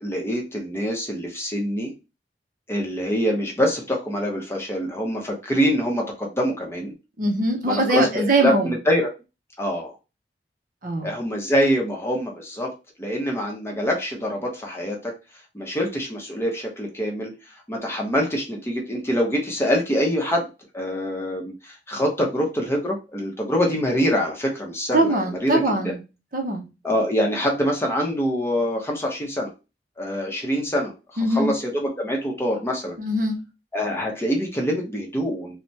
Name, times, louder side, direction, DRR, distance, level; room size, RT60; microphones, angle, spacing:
voice 1, 0.0-1.9 2.7-6.9 7.7-9.1 9.6-9.9 11.0-12.7 13.0-15.1 15.5-17.3 17.7-20.5 20.7-25.9 26.8-29.5 30.0-30.9 31.3-32.9 33.7-35.6, equal, 15° left, 0.7 m, -25 dB
voice 2, 7.2-8.7 10.8-11.1 24.9-26.0 26.3-26.7 31.2-31.5 33.0-33.4, right 1 dB, 50° right, 0.6 m, -22 dB
3.2 x 2.1 x 2.7 m
head